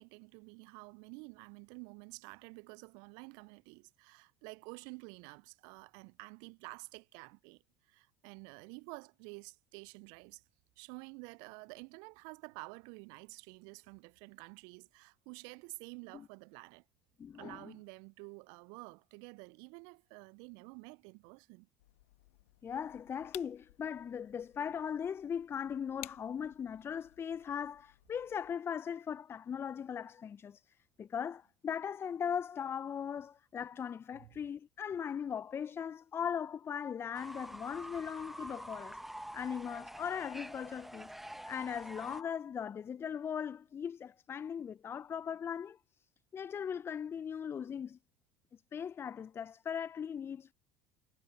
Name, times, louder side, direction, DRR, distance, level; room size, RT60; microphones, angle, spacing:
voice 1, 0.0-10.4 10.8-16.8 17.3-21.7 34.1-34.3, right 34 dB, 60° right, 0.9 m, -50 dB
voice 2, 17.2-17.7 22.6-30.6 31.0-39.0 39.3-41.1 41.5-45.8 46.3-48.0 48.5-50.5, left 7 dB, 30° left, 0.8 m, -39 dB
sound 1, 21.8-28.5, left 17 dB, 70° left, 1.8 m, -56 dB
Fowl / Bird, 37.1-42.2, right 1 dB, 5° right, 1.4 m, -47 dB
figure-of-eight pair, 65°, 8 cm